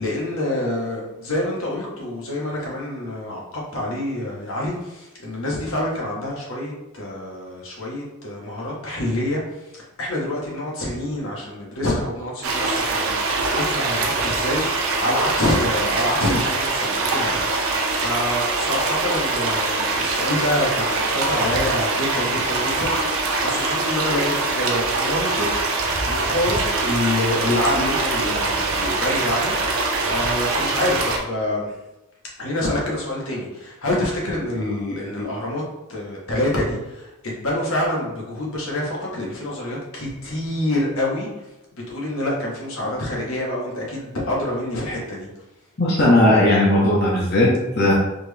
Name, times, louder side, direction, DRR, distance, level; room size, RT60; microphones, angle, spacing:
voice 1, 0.0-25.7 26.0-31.7 32.4-35.6 35.9-41.5 41.9-45.4, left 1 dB, 70° left, -3 dB, 1.3 m, -27 dB
sound 1, 12.4-31.2, right 3 dB, 70° right, 0.7 m, -23 dB
voice 2, 45.8-47.9, left 1 dB, 45° left, -6 dB, 0.9 m, -17 dB
4.3 x 3.1 x 3.4 m, 0.96 s
head